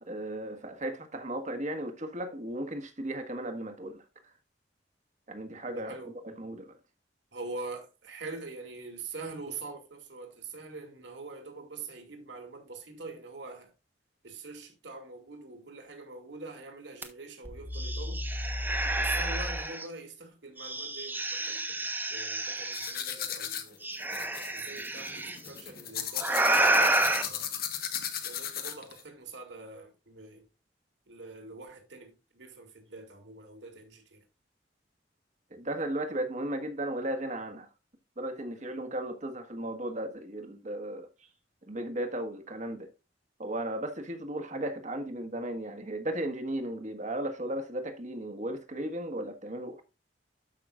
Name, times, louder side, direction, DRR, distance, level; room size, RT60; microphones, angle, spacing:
voice 1, 0.0-4.3 5.3-6.0 6.2-6.8 35.5-37.7 38.2-41.3 41.6-42.9 43.4-49.8, right 1 dB, 40° right, 1.4 m, -35 dB
voice 2, 5.7-6.2 7.3-13.7 14.2-18.2 18.9-23.8 24.5-27.5 28.2-30.4 31.1-34.2, right 3 dB, 75° right, 2.4 m, -44 dB
sound 1, 17.0-17.1 17.5-19.8 20.6-23.0 23.8-25.4 26.2-27.2, right 2 dB, 10° right, 1.2 m, -29 dB
sound 2, 22.7-29.0, left 9 dB, 55° left, 1.3 m, -36 dB
13.0 x 5.7 x 2.4 m
head